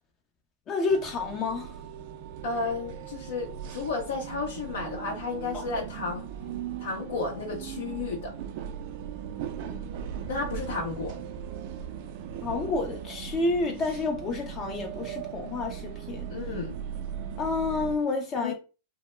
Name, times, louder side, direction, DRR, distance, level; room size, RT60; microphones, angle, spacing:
voice 1, 0.7-1.7 12.4-16.2 17.4-18.5, left 3 dB, 35° left, 0.5 m, -29 dB
sound 1, 0.9-18.0, right 8 dB, 55° right, 0.4 m, -38 dB
voice 2, 2.4-6.3 6.8-8.3 10.3-11.2 16.3-16.8 18.4-18.5, left 4 dB, 75° left, 0.6 m, -32 dB
2.1 x 2.1 x 3.1 m
hypercardioid pair, 115°, 0 cm